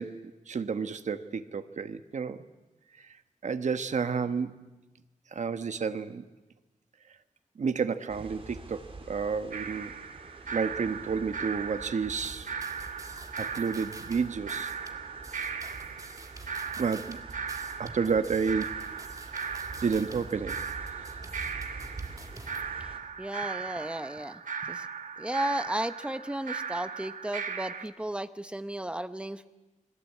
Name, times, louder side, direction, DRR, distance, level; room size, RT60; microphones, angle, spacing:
voice 1, 0.0-2.4 3.4-4.6 5.3-6.2 7.6-9.9 10.5-12.5 13.4-14.7 16.8-17.2 17.8-19.0 19.8-20.6, right 5 dB, 65° right, 10 dB, 1.3 m, -30 dB
sound 1, 8.1-23.0, right 3 dB, 45° right, 3.4 m, -46 dB
sound 2, 9.5-27.8, right 6 dB, 85° right, 1.5 m, -38 dB
sound 3, 12.2-22.6, right 2 dB, 25° right, 1.9 m, -50 dB
voice 2, 23.2-24.9 25.2-29.5, right 1 dB, 10° right, 11 dB, 1.0 m, -34 dB
29.5 x 21.5 x 8.5 m, 1.1 s
wide cardioid pair, 165°, 13 cm